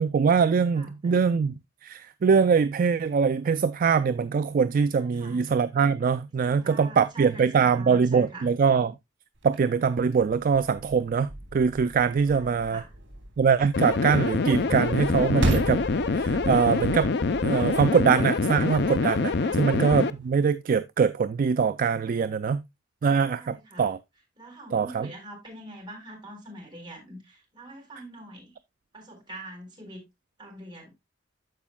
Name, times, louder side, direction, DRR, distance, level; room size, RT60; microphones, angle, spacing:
voice 1, 0.0-1.5 1.8-8.9 9.4-12.8 13.4-15.9 16.1-17.1 17.4-22.6 23.0-24.0 24.7-25.1, right 6 dB, 45° right, 0.3 m, -23 dB
voice 2, 0.7-1.4 5.0-5.4 6.4-8.5 12.3-12.9 19.3-19.6 23.3-23.9 24.4-28.5 28.9-30.0 30.4-30.9, right 1 dB, 25° right, 4.0 m, -44 dB
sound 1, 9.4-20.3, right 1 dB, 75° right, 3.2 m, -36 dB
sound 2, 13.7-20.1, left 4 dB, 60° left, 0.5 m, -25 dB
14.0 x 5.1 x 2.2 m
head